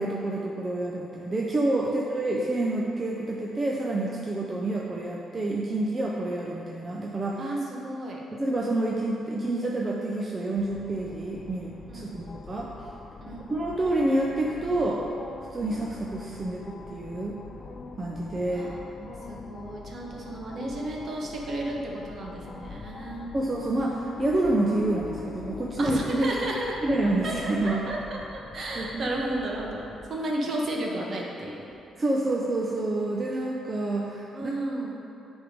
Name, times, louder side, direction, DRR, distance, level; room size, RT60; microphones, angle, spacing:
voice 1, 0.0-7.5 8.3-12.7 13.5-15.0 15.5-17.4 18.0-18.7 23.3-26.3 26.8-27.8 28.8-29.0 32.0-34.5, right 2 dB, 30° right, -3 dB, 0.7 m, -28 dB
voice 2, 7.4-8.2 11.9-12.3 13.2-13.6 18.5-23.3 25.8-26.8 27.2-31.6 34.3-35.0, right 1 dB, 50° right, -2 dB, 1.3 m, -33 dB
sound 1, 10.6-30.1, left 4 dB, 40° left, 0.5 m, -43 dB
8.9 x 3.6 x 5.1 m, 2.9 s
cardioid pair, 90°, 0 cm